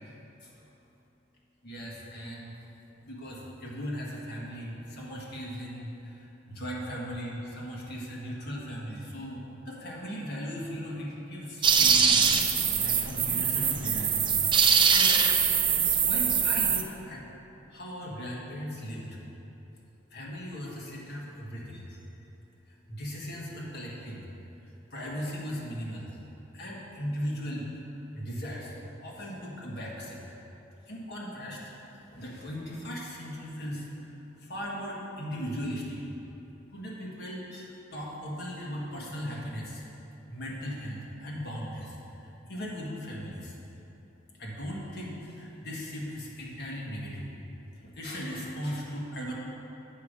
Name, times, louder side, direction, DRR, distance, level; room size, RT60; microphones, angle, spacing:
voice 1, 1.6-2.5 3.1-12.3 12.8-14.3 14.8-15.2 16.1-17.2 17.7-19.1 20.1-22.0 22.9-24.2 24.9-26.1 26.5-27.7 28.1-28.7 29.0-30.2 30.9-31.6 32.1-33.9 34.5-36.0 36.7-39.8 40.3-43.6 44.4-47.2 47.8-49.3, equal, 55° left, -4 dB, 1.6 m, -38 dB
sound 1, 11.6-16.8, right 6 dB, 25° right, 0.4 m, -23 dB
8.1 x 5.0 x 6.6 m, 3.0 s
head